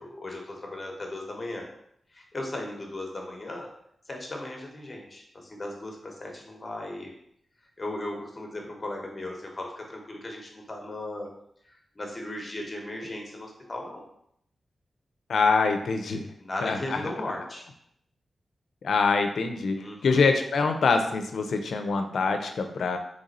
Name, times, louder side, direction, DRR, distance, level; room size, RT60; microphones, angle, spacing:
voice 1, 0.0-1.7 2.1-3.7 4.1-7.2 7.8-11.3 11.6-14.0 16.4-17.7 19.8-20.3, left 1 dB, 30° left, 0 dB, 1.0 m, -37 dB
voice 2, 15.3-16.3 16.6-17.0 18.8-19.8 20.0-23.0, left 4 dB, 80° left, 6 dB, 0.5 m, -24 dB
3.9 x 3.2 x 4.1 m, 0.72 s
wide cardioid pair, 110°, 0 cm